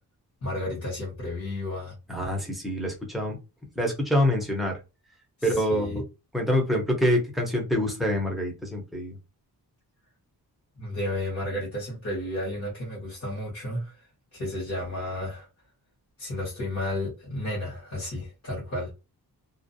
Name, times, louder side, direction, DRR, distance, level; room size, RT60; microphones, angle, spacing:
voice 1, 0.4-1.9 5.4-6.0 10.8-15.5 16.2-18.9, left 1 dB, 40° left, 1.1 m, -32 dB
voice 2, 2.1-3.4 3.8-4.7 5.4-6.0 6.3-9.1, left 1 dB, ahead, 0.6 m, -26 dB
2.4 x 2.0 x 2.6 m
wide cardioid pair, 175°, 37 cm